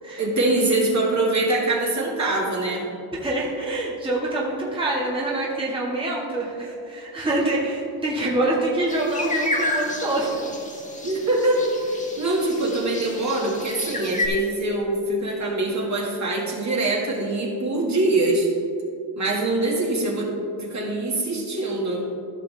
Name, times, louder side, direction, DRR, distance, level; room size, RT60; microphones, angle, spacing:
voice 1, 0.2-2.9 11.0-11.7 12.2-18.5 19.2-20.3 20.6-22.0, right 2 dB, 35° right, -3 dB, 2.2 m, -23 dB
voice 2, 3.1-10.4, right 2 dB, 10° right, -5 dB, 1.8 m, -25 dB
sound 1, 8.9-14.3, left 2 dB, 15° left, 1.4 m, -31 dB
15.0 x 5.8 x 3.5 m, 2.6 s
cardioid pair, 95°, 47 cm